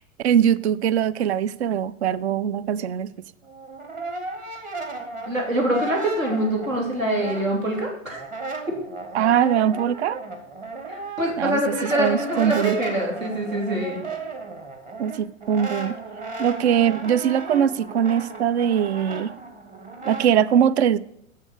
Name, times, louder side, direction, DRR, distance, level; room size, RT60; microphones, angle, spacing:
voice 1, 0.2-3.1 9.1-10.2 11.4-12.8 15.0-16.0 16.4-19.3 20.1-21.0, right 9 dB, 55° right, 0.5 m, -21 dB
Brass instrument, 3.4-7.8 8.1-20.3, right 3 dB, 20° right, 1.3 m, -35 dB
voice 2, 5.3-8.2 10.9-14.0, right 1 dB, 75° right, 3.1 m, -25 dB
7.1 x 6.6 x 6.7 m
figure-of-eight pair, 100°, 40 cm